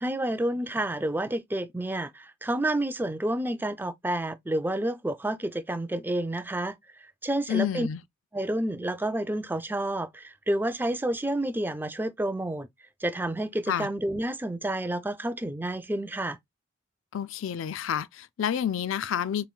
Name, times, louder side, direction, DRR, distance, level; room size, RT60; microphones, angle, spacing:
voice 1, 0.0-6.8 7.2-7.9 8.3-12.7 13.0-16.4, right 1 dB, 10° right, 0.4 m, -29 dB
voice 2, 7.5-8.0 13.7-13.9 17.1-19.5, left 9 dB, 80° left, 0.4 m, -29 dB
7.0 x 3.1 x 2.2 m
head